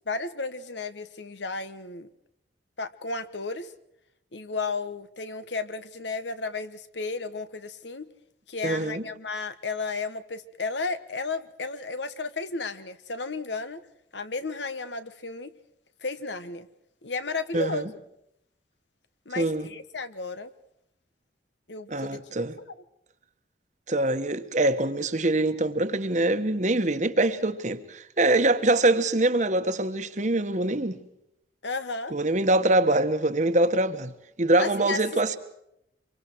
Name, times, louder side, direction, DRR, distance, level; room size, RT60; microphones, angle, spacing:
voice 1, 0.1-2.1 2.8-3.7 4.3-8.1 8.5-13.8 14.1-15.5 16.0-16.7 17.0-17.9 19.2-20.5 21.7-22.4 31.6-32.1 34.6-35.0, left 3 dB, 70° left, 1.4 m, -33 dB
voice 2, 8.6-9.0 17.5-17.9 19.4-19.7 21.9-22.6 23.9-31.0 32.1-34.1 34.4-35.4, right 2 dB, 40° right, 1.3 m, -24 dB
26.5 x 24.0 x 4.7 m
head